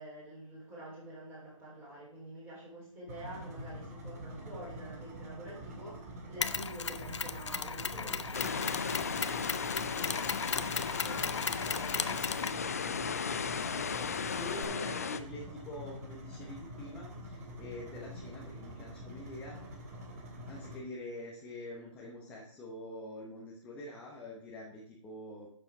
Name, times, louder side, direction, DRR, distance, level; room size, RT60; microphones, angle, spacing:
voice 1, 0.0-13.3 13.6-15.0, right 1 dB, 10° right, -6 dB, 4.0 m, -48 dB
sound 1, 3.1-20.8, right 1 dB, 30° right, 1.8 m, -46 dB
Mechanisms, 6.4-14.6, left 6 dB, 55° left, 0.7 m, -37 dB
sound 2, 8.3-15.2, left 6 dB, 30° left, 0.3 m, -36 dB
voice 2, 14.1-19.8 20.5-25.5, left 1 dB, 5° left, -3 dB, 0.9 m, -46 dB
11.0 x 7.0 x 3.7 m, 0.64 s
figure-of-eight pair, 155°, 17 cm